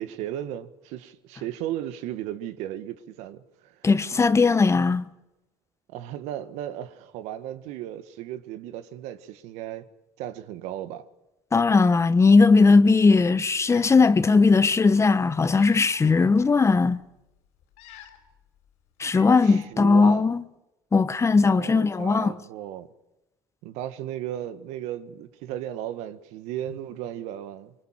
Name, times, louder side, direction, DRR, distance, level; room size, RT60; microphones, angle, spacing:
voice 1, 0.0-3.9 5.9-9.9 10.2-11.1 19.4-20.3 21.4-22.9 23.6-27.7, right 12 dB, 70° right, 1.7 m, -35 dB
voice 2, 3.8-5.1 11.5-17.0 19.0-20.4 20.9-22.3, left 4 dB, 25° left, 1.2 m, -18 dB
Cat, 13.2-13.3 13.6-14.2 15.1-16.3 16.9-17.0 17.6-18.4 18.7-18.8 19.1-19.7, left 10 dB, 75° left, 4.5 m, -47 dB
26.0 x 24.0 x 7.6 m
hypercardioid pair, 75°, 12 cm